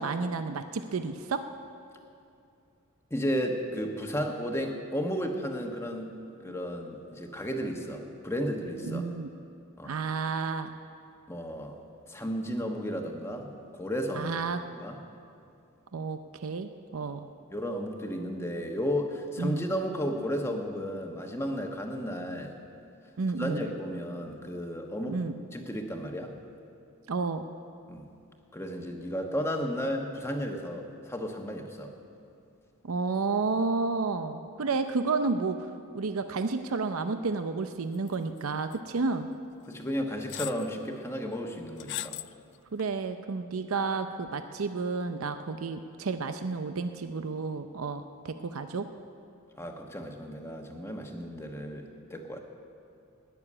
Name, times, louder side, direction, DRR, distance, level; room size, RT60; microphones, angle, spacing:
voice 1, 0.0-1.4 8.8-9.3 9.8-10.7 14.1-14.6 15.9-17.3 19.4-19.6 23.2-23.6 25.1-25.3 27.1-27.5 32.8-39.3 42.7-48.9, right 4 dB, 80° right, 8 dB, 0.6 m, -31 dB
voice 2, 3.1-6.2 6.4-9.0 9.8-9.9 11.3-11.8 12.1-14.3 14.7-15.0 17.5-22.6 23.4-25.2 25.5-26.3 27.9-28.1 28.5-31.9 39.6-42.2 49.6-52.4, equal, 10° left, 3 dB, 1.2 m, -33 dB
sound 1, 38.1-38.4 38.7-38.8 39.7-39.8 40.3-40.7 41.8-42.3 42.8-42.9, left 15 dB, 55° left, 0.3 m, -37 dB
18.5 x 6.9 x 9.8 m, 2.5 s
head